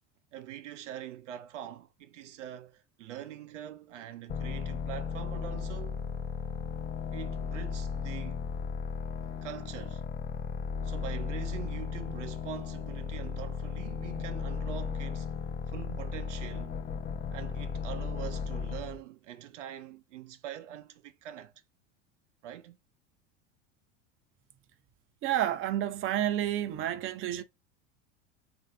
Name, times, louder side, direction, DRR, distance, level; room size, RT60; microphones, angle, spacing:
voice 1, 0.3-6.0 7.1-8.4 9.4-10.0 10.8-15.3 15.7-16.8 17.3-21.5 22.4-22.8, right 11 dB, 80° right, 0.7 m, -43 dB
sound 1, 4.3-19.0, left 6 dB, 25° left, 0.5 m, -35 dB
voice 2, 25.2-27.4, right 12 dB, 35° right, 0.6 m, -30 dB
3.3 x 2.7 x 3.8 m
hypercardioid pair, 85°, 35 cm